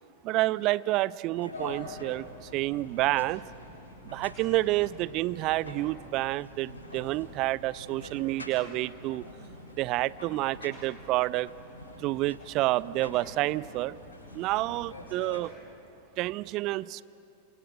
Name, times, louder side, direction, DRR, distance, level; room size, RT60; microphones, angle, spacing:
voice 1, 0.2-3.4 4.1-9.3 9.7-11.5 12.0-14.0 14.3-15.5 16.2-17.0, right 18 dB, 40° right, 21 dB, 0.5 m, -29 dB
sound 1, 1.4-15.4, left 1 dB, 75° left, 7.5 m, -46 dB
28.0 x 26.0 x 7.7 m, 2.9 s
figure-of-eight pair, 90°, 0 cm